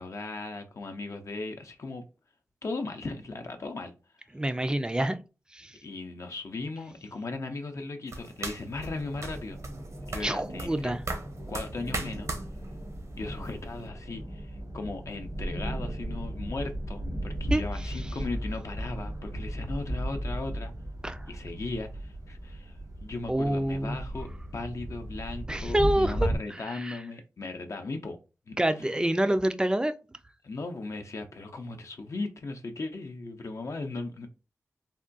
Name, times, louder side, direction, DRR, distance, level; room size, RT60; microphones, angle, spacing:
voice 1, 0.0-2.0 2.6-3.9 5.8-9.6 10.1-11.0 11.5-12.3 13.2-20.7 21.3-28.2 28.5-28.9 30.4-34.3, left 3 dB, 60° left, 0.5 m, -37 dB
voice 2, 4.3-5.2 5.5-5.8 10.2-11.0 17.5-17.6 21.0-21.3 23.3-24.0 25.5-26.3 26.7-27.0 28.6-29.9, right 1 dB, 15° right, 0.3 m, -27 dB
sound 1, 8.1-13.9, right 2 dB, 60° right, 0.7 m, -39 dB
sound 2, 8.7-26.4, right 1 dB, 85° right, 1.1 m, -36 dB
3.5 x 2.2 x 2.5 m
wide cardioid pair, 75°, 6 cm